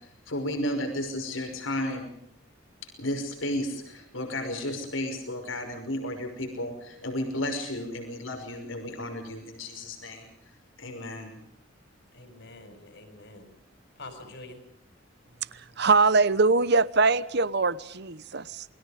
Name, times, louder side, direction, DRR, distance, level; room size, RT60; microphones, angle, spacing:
voice 1, 0.0-2.1 3.0-10.3 10.8-11.4, left 1 dB, 85° left, 4 dB, 5.6 m, -33 dB
voice 2, 12.1-13.5 14.0-14.6, left 2 dB, 60° left, 8 dB, 5.3 m, -46 dB
voice 3, 15.8-18.6, right 3 dB, 60° right, 17 dB, 0.9 m, -22 dB
28.5 x 22.0 x 5.1 m, 0.76 s
head